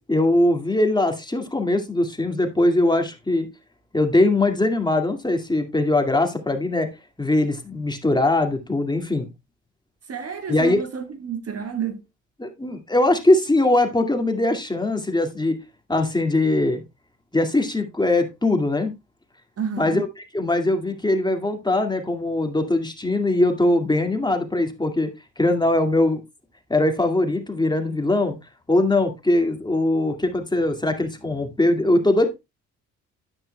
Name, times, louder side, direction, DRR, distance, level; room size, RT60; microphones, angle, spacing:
voice 1, 0.1-3.5 3.9-6.9 7.2-9.3 10.5-10.8 12.4-15.6 15.9-16.8 17.3-18.9 19.7-20.1 20.3-25.1 25.4-26.2 26.7-28.4 28.7-32.4, left 2 dB, 10° left, 2.0 m, -21 dB
voice 2, 10.1-12.0 19.6-20.0, right 7 dB, 45° right, 1.3 m, -30 dB
10.5 x 9.0 x 2.2 m
hypercardioid pair, 55°, 35 cm